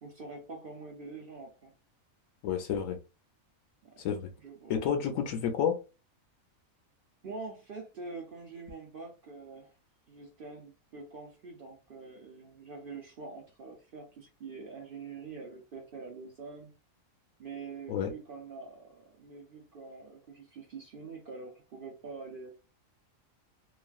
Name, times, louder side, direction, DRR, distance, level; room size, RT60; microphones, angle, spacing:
voice 1, 0.0-1.7 3.8-4.0 4.4-4.9 7.2-9.7 10.1-16.7 17.4-22.5, right 4 dB, 55° right, 0.6 m, -45 dB
voice 2, 2.4-3.0 4.0-4.3 4.7-5.8 17.9-18.1, left 8 dB, 75° left, 1.1 m, -30 dB
3.0 x 2.4 x 2.3 m
omnidirectional pair, 1.4 m